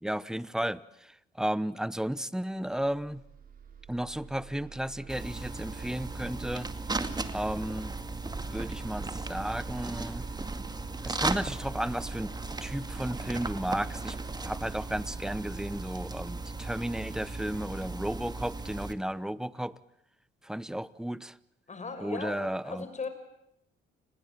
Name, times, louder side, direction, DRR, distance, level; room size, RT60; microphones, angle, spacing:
voice 1, 0.0-3.2 3.9-6.7 7.3-7.9 8.5-10.2 11.0-12.3 12.6-19.7 20.4-21.4 22.0-22.9, right 1 dB, 5° right, 17 dB, 1.0 m, -33 dB
sound 1, 2.6-18.0, right 7 dB, 45° right, 4.2 m, -49 dB
sound 2, 5.1-18.9, right 3 dB, 20° right, 2.2 m, -36 dB
voice 2, 21.7-23.1, left 4 dB, 35° left, 10 dB, 5.8 m, -38 dB
30.0 x 21.0 x 8.9 m, 0.80 s
cardioid pair, 90°, 20 cm